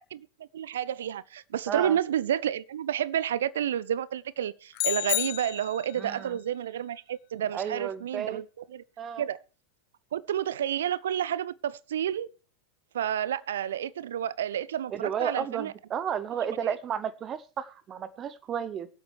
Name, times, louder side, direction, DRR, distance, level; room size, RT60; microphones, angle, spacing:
voice 1, 0.5-8.4 8.7-8.8 9.2-9.4 10.1-12.3 12.9-15.7 16.6-16.7, right 10 dB, 60° right, 0.5 m, -30 dB
sound 1, 4.7-6.1, left 24 dB, 45° left, 0.5 m, -30 dB
voice 2, 6.0-6.4 7.5-8.4 9.0-9.2 14.9-18.9, right 8 dB, 25° right, 0.7 m, -32 dB
22.5 x 8.1 x 3.2 m
figure-of-eight pair, 90°, 0 cm